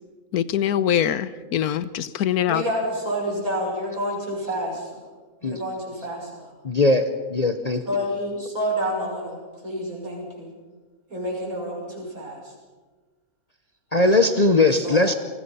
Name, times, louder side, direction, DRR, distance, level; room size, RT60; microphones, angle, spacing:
voice 1, 0.3-2.6, left 10 dB, 90° left, 15 dB, 1.4 m, -23 dB
voice 2, 2.5-4.9 5.4-6.5 7.8-10.5 11.1-12.4 14.2-14.3 14.8-15.1, equal, 70° right, -1 dB, 6.7 m, -29 dB
voice 3, 6.6-7.8 13.9-15.1, left 2 dB, 30° left, 8 dB, 0.9 m, -19 dB
28.5 x 20.0 x 5.6 m, 1.4 s
omnidirectional pair, 1.6 m